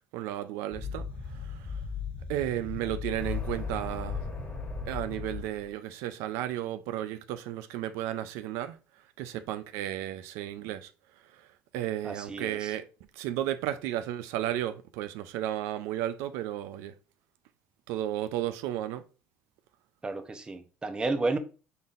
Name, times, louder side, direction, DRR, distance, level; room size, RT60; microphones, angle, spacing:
voice 1, 0.1-1.8 2.3-4.3 4.9-10.9 11.2-12.9 13.1-16.9 17.9-19.0, right 12 dB, 80° right, 0.4 m, -34 dB
sound 1, 0.7-5.7, left 5 dB, 25° left, 1.4 m, -36 dB
voice 2, 12.0-12.7 20.0-21.4, right 3 dB, 20° right, 0.7 m, -32 dB
5.4 x 3.9 x 2.5 m
cardioid pair, 105°, 5 cm